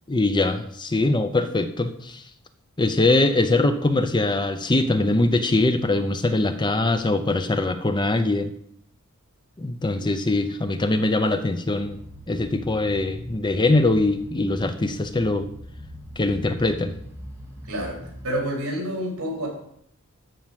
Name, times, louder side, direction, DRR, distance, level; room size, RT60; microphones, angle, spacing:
voice 1, 0.1-2.2 2.8-8.5 9.6-12.0 12.3-15.5 16.2-16.9, left 2 dB, 20° left, 9 dB, 0.6 m, -22 dB
sound 1, 11.8-18.3, equal, 10° right, 2.6 m, -42 dB
voice 2, 17.6-18.0 18.2-19.5, equal, 65° right, -2 dB, 4.8 m, -28 dB
13.5 x 5.0 x 7.4 m, 0.71 s
head